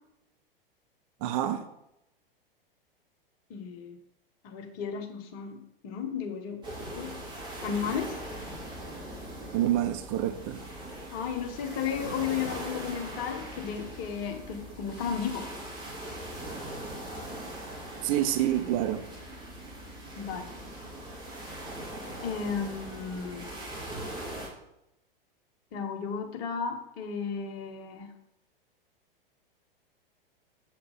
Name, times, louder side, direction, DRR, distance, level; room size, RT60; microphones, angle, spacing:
voice 1, 1.2-1.6 9.5-10.6 18.0-19.1, right 12 dB, 35° right, 0.7 m, -27 dB
voice 2, 3.5-4.0 4.4-6.6 6.9-7.1 7.6-8.1 11.1-15.5 20.2-20.5 22.2-23.5 25.7-28.1, left 7 dB, 40° left, 1.3 m, -34 dB
sound 1, 6.6-24.5, right 1 dB, 15° right, 2.4 m, -41 dB
7.4 x 7.3 x 4.2 m
figure-of-eight pair, 95°, 29 cm